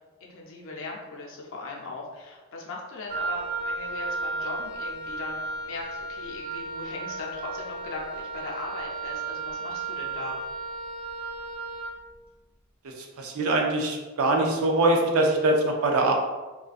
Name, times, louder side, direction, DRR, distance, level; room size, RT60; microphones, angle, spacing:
voice 1, 0.2-10.4, left 3 dB, 65° left, -1 dB, 0.5 m, -39 dB
Wind instrument woodwind instrument, 3.1-11.9, right 3 dB, 25° right, 0.5 m, -34 dB
voice 2, 12.8-16.1, right 2 dB, 90° right, 2 dB, 0.4 m, -23 dB
2.4 x 2.1 x 2.4 m, 1.2 s
head